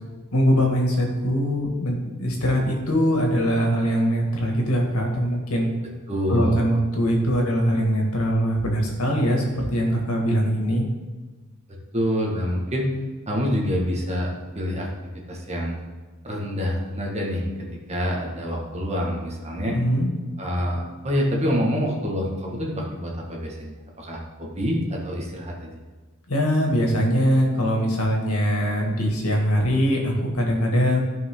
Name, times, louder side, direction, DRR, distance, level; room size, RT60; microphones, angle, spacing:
voice 1, 0.3-5.7 6.3-10.8 19.6-20.1 26.3-31.0, equal, 90° left, 0 dB, 2.3 m, -22 dB
voice 2, 6.1-6.6 11.9-12.9 13.3-14.3 14.5-14.9 15.3-15.8 16.2-19.7 20.4-25.7, equal, 30° right, -2 dB, 1.8 m, -26 dB
14.5 x 5.4 x 3.9 m, 1.3 s
head